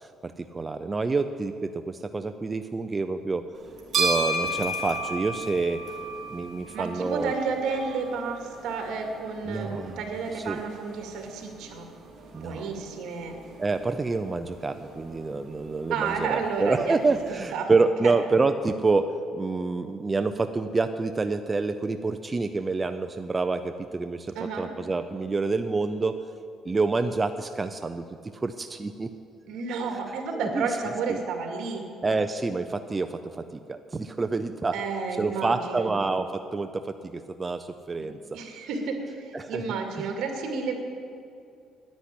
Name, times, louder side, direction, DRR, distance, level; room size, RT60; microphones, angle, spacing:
voice 1, 0.0-3.4 4.0-5.8 6.3-7.3 9.5-10.0 10.5-10.6 12.3-12.7 13.6-26.2 26.7-28.0 28.3-29.1 30.6-30.7 31.1-31.2 32.0-34.7 35.2-38.2 39.3-39.6, right 3 dB, 15° right, 8 dB, 0.4 m, -27 dB
sound 1, 3.6-17.4, right 2 dB, 40° right, 2.6 m, -35 dB
voice 2, 6.7-11.9 12.3-13.4 15.9-17.0 17.5-17.7 18.0-18.1 24.3-24.7 29.4-31.9 34.7-35.9 38.0-40.7, right 5 dB, 70° right, 3 dB, 2.3 m, -31 dB
10.5 x 10.0 x 9.9 m, 2.4 s
cardioid pair, 165°, 0 cm